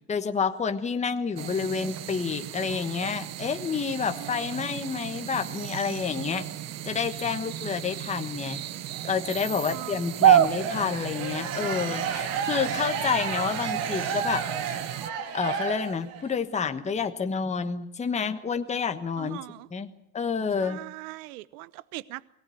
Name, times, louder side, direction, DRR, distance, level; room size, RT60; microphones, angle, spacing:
voice 1, 0.0-6.5 6.8-8.6 9.1-14.5 15.3-19.4 19.7-19.9 20.1-20.8, left 6 dB, 15° left, 1.3 m, -29 dB
sound 1, 1.4-15.1, right 11 dB, 35° right, 0.9 m, -30 dB
voice 2, 4.1-4.8 9.5-10.3 19.2-19.7 20.6-22.3, right 19 dB, 80° right, 0.9 m, -41 dB
sound 2, 10.4-16.3, right 7 dB, 65° right, 2.4 m, -32 dB
23.0 x 18.5 x 9.3 m
supercardioid pair, 135°, 44 cm